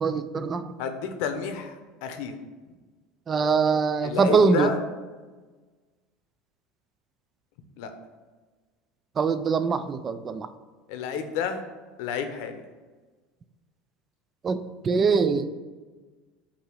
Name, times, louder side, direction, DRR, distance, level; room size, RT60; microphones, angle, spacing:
voice 1, 0.0-0.7 3.3-4.7 9.2-10.5 14.4-15.5, right 5 dB, 20° right, 12 dB, 0.3 m, -23 dB
voice 2, 0.8-2.4 4.0-4.8 7.8-7.9 10.9-11.6 12.0-12.6, left 6 dB, 65° left, 7 dB, 0.8 m, -30 dB
8.4 x 2.9 x 6.1 m, 1.3 s
cardioid pair, 165°, 0 cm